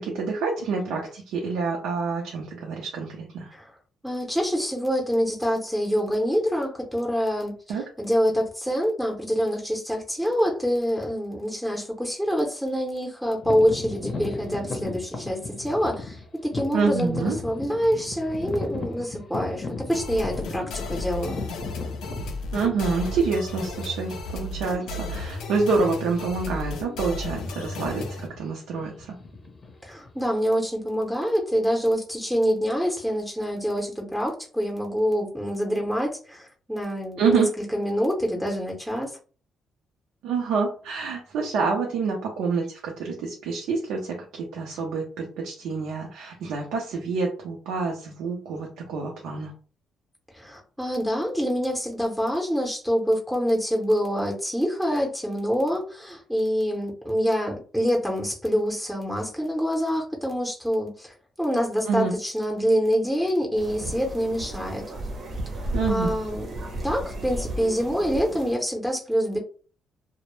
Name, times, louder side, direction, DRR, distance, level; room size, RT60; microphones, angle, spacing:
voice 1, 0.0-3.5 7.7-7.8 16.7-17.4 22.5-29.1 37.2-37.5 40.2-49.5 61.8-62.1 65.7-66.1, right 4 dB, 90° right, 0 dB, 0.5 m, -27 dB
voice 2, 4.0-21.4 29.8-37.4 37.7-39.1 50.3-64.8 65.9-66.5 66.8-69.4, equal, 5° right, -1 dB, 0.6 m, -26 dB
sound 1, 13.4-23.2 23.9-24.0 24.6-24.8 25.1-25.4 26.0-26.6 26.8-30.2, left 3 dB, 35° left, 0.6 m, -36 dB
sound 2, 19.9-28.3, left 2 dB, 80° left, 0.4 m, -34 dB
sound 3, 63.6-68.5, right 1 dB, 50° right, 0.7 m, -34 dB
2.0 x 2.0 x 3.0 m, 0.40 s
cardioid pair, 90°, 0 cm